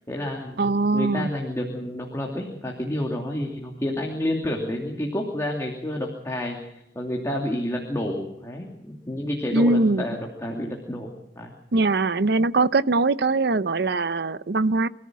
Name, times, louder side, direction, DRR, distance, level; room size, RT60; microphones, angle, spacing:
voice 1, 0.1-11.5, left 1 dB, 15° left, 0 dB, 2.7 m, -30 dB
voice 2, 0.6-1.3 9.5-10.0 11.7-14.9, right 3 dB, 65° right, 15 dB, 0.7 m, -21 dB
26.0 x 14.5 x 7.5 m, 0.85 s
head